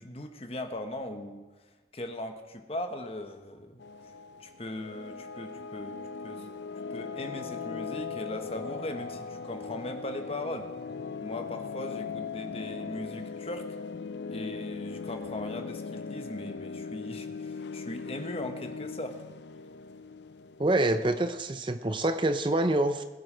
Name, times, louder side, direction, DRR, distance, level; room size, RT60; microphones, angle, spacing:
voice 1, 0.0-1.5 1.9-3.8 4.4-6.5 6.9-10.7 11.2-13.7 14.3-19.2, left 1 dB, 35° left, 6 dB, 1.2 m, -39 dB
sound 1, 3.8-21.3, left 5 dB, 80° left, 0.5 m, -39 dB
voice 2, 20.6-23.0, right 2 dB, 30° right, 9 dB, 0.6 m, -26 dB
21.5 x 8.0 x 5.1 m, 1.3 s
head